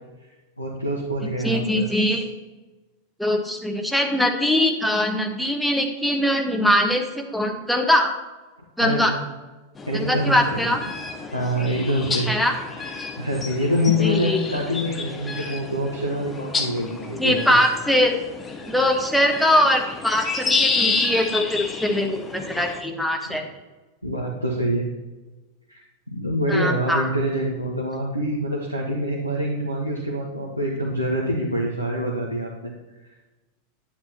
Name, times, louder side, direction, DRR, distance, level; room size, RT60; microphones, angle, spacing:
voice 1, 0.6-2.2 7.3-7.5 8.8-9.1 9.9-10.6 11.3-12.3 12.8-17.5 23.3-23.4 24.0-24.9 25.7-25.8 26.1-32.7, equal, 90° left, -2 dB, 1.2 m, -25 dB
voice 2, 1.4-2.2 3.2-8.1 8.8-9.1 9.9-10.8 12.3-12.5 14.0-14.4 17.2-18.2 18.7-23.5 26.5-27.1, left 1 dB, ahead, 2 dB, 1.2 m, -22 dB
sound 1, 9.8-22.8, left 4 dB, 15° left, 0.9 m, -30 dB
10.0 x 9.4 x 2.9 m, 1.2 s
figure-of-eight pair, 90°, 0 cm